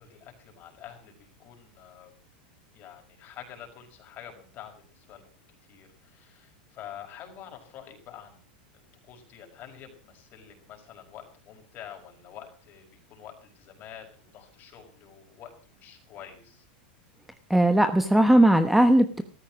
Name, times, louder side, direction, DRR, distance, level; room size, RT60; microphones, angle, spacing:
voice 1, 0.0-2.2 2.7-5.3 5.7-8.4 9.0-16.6, left 9 dB, 35° left, 4 dB, 5.6 m, -47 dB
voice 2, 17.5-19.2, right 1 dB, 5° right, 9 dB, 1.0 m, -19 dB
14.5 x 14.0 x 6.2 m, 0.43 s
supercardioid pair, 130°, 5 cm